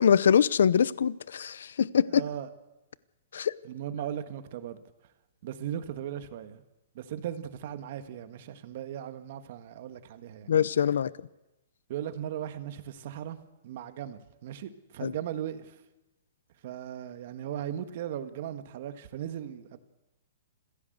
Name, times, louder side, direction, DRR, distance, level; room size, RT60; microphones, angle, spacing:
voice 1, 0.0-2.2 3.3-3.5 10.5-11.1 15.0-15.1, left 8 dB, 75° left, 0.7 m, -23 dB
voice 2, 2.1-2.5 3.6-4.8 5.4-6.6 7.0-10.5 11.9-13.4 13.6-15.8 16.6-19.8, right 10 dB, 40° right, 1.7 m, -37 dB
26.5 x 16.0 x 8.0 m
hypercardioid pair, 175°, 0 cm